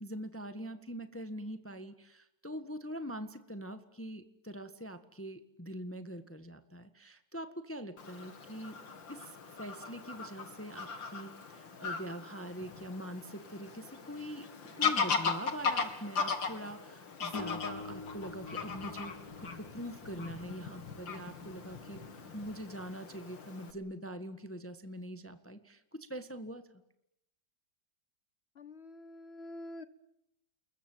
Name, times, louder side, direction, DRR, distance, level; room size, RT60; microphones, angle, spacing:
voice 1, 0.0-8.8 9.1-9.3 9.6-14.4 14.8-22.0 22.3-26.7, right 1 dB, 5° left, 9 dB, 1.5 m, -43 dB
Fowl / Bird vocalization bird call bird song, 8.0-23.7, left 5 dB, 80° left, 3.2 m, -38 dB
sound 1, 17.3-20.5, left 3 dB, 55° left, 4.3 m, -46 dB
voice 2, 28.6-29.8, left 1 dB, 35° left, 13 dB, 1.5 m, -46 dB
29.5 x 22.0 x 9.2 m, 0.82 s
omnidirectional pair, 2.0 m